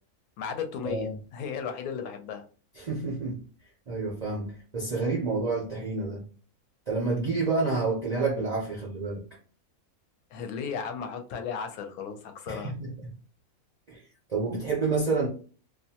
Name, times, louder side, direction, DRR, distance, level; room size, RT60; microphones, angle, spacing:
voice 1, 0.4-2.4 10.3-12.7, left 6 dB, 75° left, 1.0 m, -35 dB
voice 2, 2.8-3.4 3.9-6.2 6.9-9.2 12.5-13.1 13.9-14.0 14.3-15.3, right 3 dB, 65° right, 0.4 m, -29 dB
2.6 x 2.1 x 2.7 m
omnidirectional pair, 1.6 m